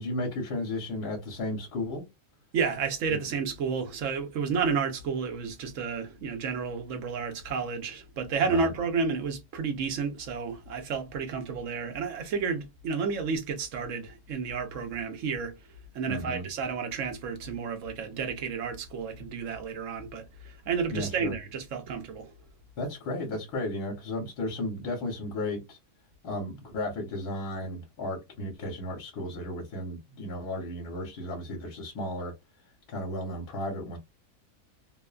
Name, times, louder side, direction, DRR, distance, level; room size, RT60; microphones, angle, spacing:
voice 1, 0.0-2.1 8.5-8.7 16.1-16.5 20.9-21.3 22.8-25.8 26.2-32.3 32.9-34.0, left 1 dB, 75° left, 1.4 m, -34 dB
voice 2, 2.5-22.3, right 5 dB, 65° right, 0.8 m, -31 dB
2.9 x 2.1 x 2.3 m
omnidirectional pair, 1.7 m